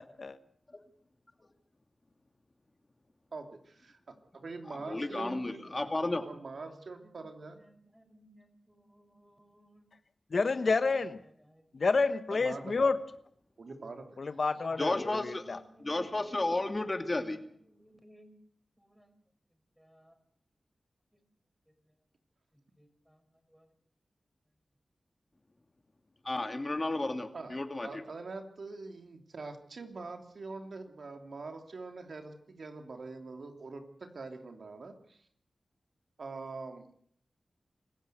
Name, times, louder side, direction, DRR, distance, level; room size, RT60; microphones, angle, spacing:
voice 1, 3.3-7.6 12.3-12.9 13.6-14.2 27.3-35.2 36.2-36.9, right 3 dB, 75° right, 5 dB, 3.1 m, -44 dB
voice 2, 4.9-6.2 14.8-17.4 26.2-28.0, left 2 dB, 35° left, 7 dB, 2.7 m, -33 dB
voice 3, 5.8-6.3 6.6-7.1 7.4-9.9 11.4-11.6 11.9-12.6 14.8-18.3 18.8-19.1 19.8-20.1 22.8-23.2 23.5-23.7, equal, 5° right, 8 dB, 5.7 m, -60 dB
voice 4, 10.3-11.2 11.7-13.0 14.2-15.6, left 4 dB, 65° left, 11 dB, 1.2 m, -29 dB
26.0 x 15.0 x 8.0 m, 0.65 s
cardioid pair, 50°, 0 cm